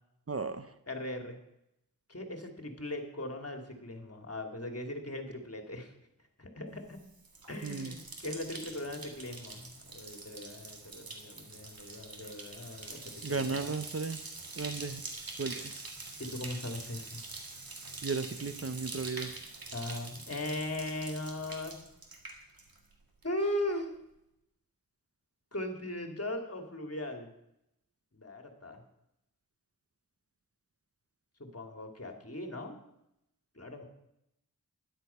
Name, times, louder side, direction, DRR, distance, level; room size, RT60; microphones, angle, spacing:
voice 1, 0.3-0.7 7.6-7.9 13.2-14.2 14.6-15.0 15.4-15.8 18.0-19.3, right 4 dB, 40° right, 10 dB, 0.9 m, -35 dB
voice 2, 0.9-1.4 2.1-5.9 6.4-7.0 7.5-13.7 16.2-17.2 19.7-21.7 23.2-23.9 25.5-27.3 28.1-28.8 31.4-32.8 33.5-33.8, left 1 dB, 45° left, 4 dB, 2.5 m, -39 dB
Bathtub (filling or washing), 6.9-23.0 23.2-23.8, right 3 dB, 85° right, 2.1 m, -45 dB
13.0 x 10.5 x 5.6 m, 0.82 s
wide cardioid pair, 40°, 35 cm